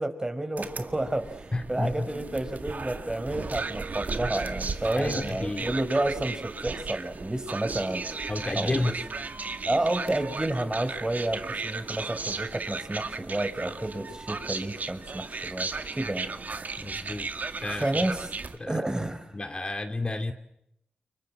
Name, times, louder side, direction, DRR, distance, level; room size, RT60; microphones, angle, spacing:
voice 1, 0.0-8.2 8.5-8.9 9.6-16.3 17.8-18.3 18.7-19.3, right 1 dB, 25° right, 9 dB, 4.8 m, -30 dB
sound 1, 0.6-18.6, right 4 dB, 55° right, 1.9 m, -35 dB
voice 2, 1.5-2.1 4.2-4.4 5.0-5.7 8.3-9.0 16.8-17.3 17.6-17.9 18.6-18.8 19.3-20.3, left 2 dB, 30° left, 6 dB, 2.3 m, -31 dB
29.5 x 24.0 x 7.6 m, 0.81 s
cardioid pair, 45°, 3 cm